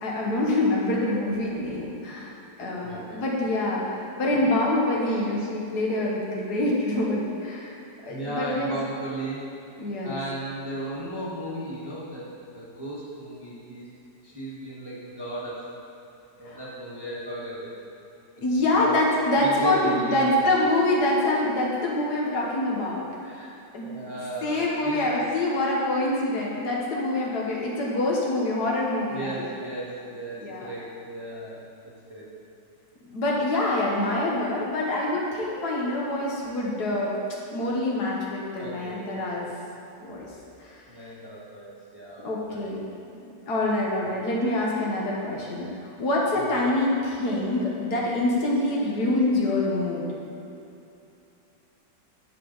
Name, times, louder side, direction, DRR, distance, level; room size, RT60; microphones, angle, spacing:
voice 1, 0.0-7.7 8.0-8.8 9.8-10.2 16.4-16.7 18.4-23.0 23.7-24.1 24.4-29.4 30.4-30.7 33.1-37.1 37.5-39.5 40.0-40.3 40.6-40.7 42.2-42.8 43.1-45.7 46.0-50.1, left 1 dB, 65° left, -4 dB, 1.7 m, -25 dB
voice 2, 2.8-3.2 4.3-4.5 5.1-5.2 8.1-9.4 10.0-13.9 14.2-15.6 16.4-17.7 18.7-19.0 19.4-20.4 23.2-23.5 23.8-25.0 29.1-32.3 38.6-39.5 40.9-42.2 42.5-42.7 46.4-46.5, right 1 dB, 15° right, -7 dB, 1.2 m, -35 dB
12.5 x 5.0 x 3.9 m, 2.7 s
omnidirectional pair, 1.9 m